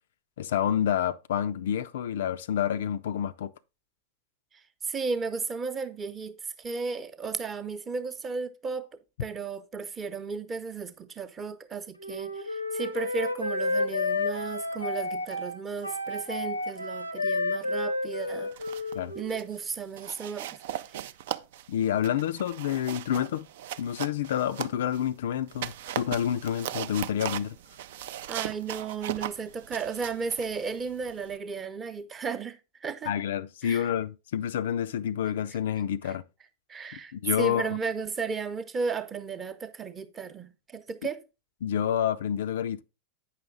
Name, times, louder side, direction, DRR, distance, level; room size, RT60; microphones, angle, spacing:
voice 1, 0.4-3.5 18.9-19.1 21.7-23.5 23.8-27.6 33.1-36.2 36.9-37.7 41.6-42.8, left 9 dB, 60° left, 0.3 m, -28 dB
voice 2, 4.5-8.9 9.2-18.8 19.1-20.6 20.9-21.0 28.3-33.1 33.6-33.9 36.0-36.1 36.7-41.2, right 5 dB, 20° right, 0.7 m, -34 dB
Wind instrument woodwind instrument, 12.0-19.4, left 2 dB, 90° left, 0.7 m, -31 dB
sound 1, 18.3-19.0 19.3-19.6 20.0-25.1 25.5-31.4, right 12 dB, 55° right, 0.4 m, -38 dB
8.7 x 5.7 x 3.7 m
figure-of-eight pair, 90°, 0 cm